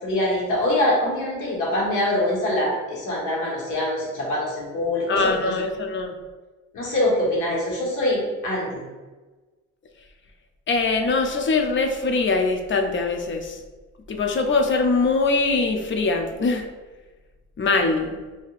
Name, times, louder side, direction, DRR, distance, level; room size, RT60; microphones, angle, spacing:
voice 1, 0.0-5.5 6.7-8.8, left 1 dB, 85° left, -5 dB, 1.5 m, -24 dB
voice 2, 5.1-6.2 10.7-13.6 14.1-16.7 17.6-18.1, left 3 dB, 40° left, 5 dB, 0.5 m, -22 dB
4.8 x 2.7 x 2.4 m, 1.3 s
cardioid pair, 90°, 30 cm